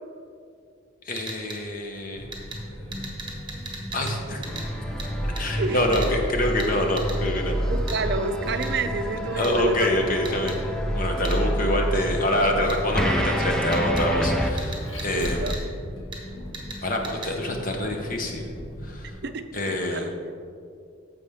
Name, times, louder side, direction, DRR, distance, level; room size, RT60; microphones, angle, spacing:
voice 1, 1.1-2.2 3.9-4.4 5.2-7.6 9.4-10.5 11.0-15.5 16.8-18.5 18.8-19.1 19.5-20.1, left 1 dB, 40° left, 2 dB, 0.8 m, -26 dB
sound 1, 1.2-1.6 2.3-2.6 2.9-4.2 4.4-4.7 5.0-5.1 5.4-5.5 5.9-6.1 6.6-6.7 7.0-7.2 7.9-8.0 8.6-8.7 9.4-9.5 10.2-10.6 11.2-11.4 12.7-12.8 13.7-14.1 14.6-15.6 16.1-16.2 16.5-16.8 17.0-17.3, right 3 dB, 25° right, 1.3 m, -37 dB
Vehicle, 2.2-19.1, equal, 85° left, 1.7 m, -32 dB
sound 2, 4.5-14.5, equal, 5° left, 0.5 m, -31 dB
voice 2, 5.6-5.9 7.7-9.9 11.2-11.4 15.1-15.6 19.2-20.4, right 3 dB, 55° right, 8 dB, 0.5 m, -29 dB
9.8 x 7.0 x 3.5 m, 2.4 s
head